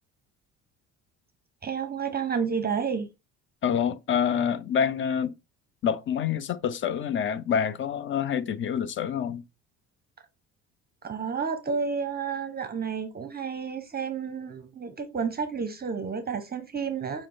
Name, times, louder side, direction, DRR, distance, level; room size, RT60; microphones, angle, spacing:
voice 1, 1.6-3.1 11.0-17.3, right 6 dB, 30° right, 0.7 m, -31 dB
voice 2, 3.6-5.3 5.8-9.4, left 8 dB, 35° left, 0.6 m, -27 dB
6.4 x 2.1 x 3.8 m
supercardioid pair, 70°, 34 cm